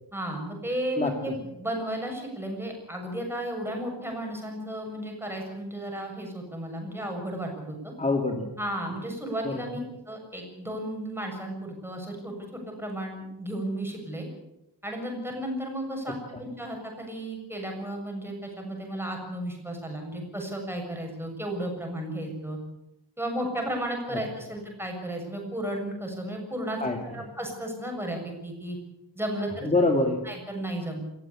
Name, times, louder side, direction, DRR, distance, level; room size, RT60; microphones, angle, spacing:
voice 1, 0.1-7.9 8.6-14.3 14.8-22.6 23.2-26.8 27.1-28.8 29.2-29.7 30.2-31.0, right 1 dB, 5° right, 1 dB, 7.1 m, -34 dB
voice 2, 1.0-1.4 8.0-8.5 9.4-9.6 16.3-16.4 24.1-24.2 26.8-27.3 29.6-30.2, left 2 dB, 15° left, 4 dB, 2.3 m, -26 dB
28.0 x 15.5 x 8.5 m, 0.88 s
wide cardioid pair, 170°, 43 cm